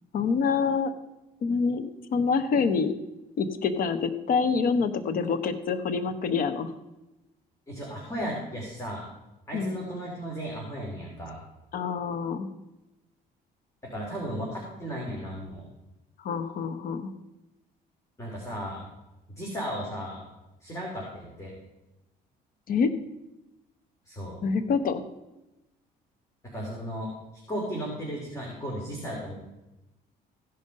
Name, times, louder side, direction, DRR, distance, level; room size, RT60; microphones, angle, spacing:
voice 1, 0.1-0.9 1.4-2.9 3.4-6.7 9.5-9.8 11.7-12.5 16.2-17.1 22.7-22.9 24.4-25.0, left 5 dB, 55° left, 10 dB, 1.0 m, -26 dB
voice 2, 7.7-9.0 9.5-11.4 13.8-15.7 18.2-18.8 19.3-20.2 20.6-21.5 24.0-24.4 26.4-27.1 27.5-29.3, equal, 15° left, -3 dB, 2.9 m, -35 dB
15.0 x 5.5 x 5.3 m, 0.99 s
cardioid pair, 110°, 17 cm